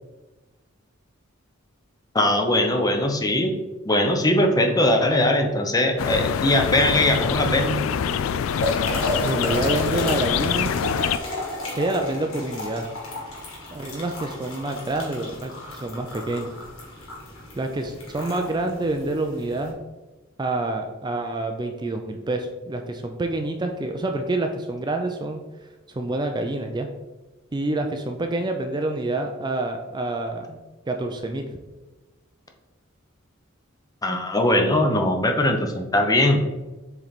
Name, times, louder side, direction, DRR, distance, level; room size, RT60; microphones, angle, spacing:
voice 1, 2.1-3.5 3.9-7.8 34.0-36.4, left 1 dB, 20° left, 4 dB, 0.7 m, -20 dB
sound 1, 6.0-11.2, left 8 dB, 70° left, 0.3 m, -25 dB
sound 2, 7.0-19.7, left 1 dB, 85° left, 2.0 m, -33 dB
voice 2, 9.2-10.7 11.7-12.9 13.7-16.5 17.6-19.8 20.4-25.4 25.9-26.9 27.5-30.6 30.9-31.5, right 2 dB, 20° right, 4 dB, 0.4 m, -27 dB
7.2 x 3.3 x 4.0 m, 1.1 s
head